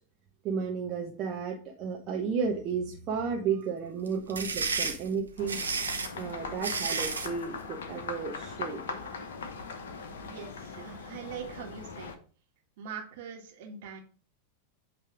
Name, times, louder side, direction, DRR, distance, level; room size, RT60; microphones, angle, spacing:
voice 1, 0.4-5.6 6.2-8.8, right 5 dB, 35° right, 0 dB, 1.0 m, -33 dB
sound 1, 4.1-7.4, right 4 dB, 75° right, 1.0 m, -32 dB
sound 2, 5.4-12.2, left 4 dB, 60° left, 0.9 m, -40 dB
voice 2, 10.2-12.1 12.8-14.0, right 7 dB, 50° right, 2 dB, 1.7 m, -42 dB
8.3 x 3.4 x 4.8 m, 0.41 s
figure-of-eight pair, 90°, 0 cm